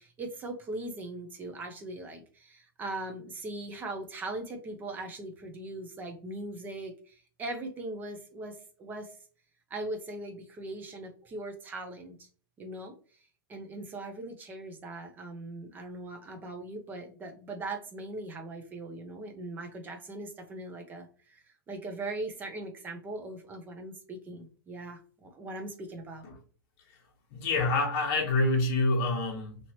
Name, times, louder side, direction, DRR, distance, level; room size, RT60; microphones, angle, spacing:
voice 1, 0.0-9.2 9.7-12.3 12.6-12.9 13.5-26.3, right 2 dB, 15° right, 0.6 m, -40 dB
voice 2, 27.3-29.6, left 2 dB, 40° left, 1.1 m, -26 dB
2.9 x 2.8 x 2.9 m
hypercardioid pair, 150°, 12 cm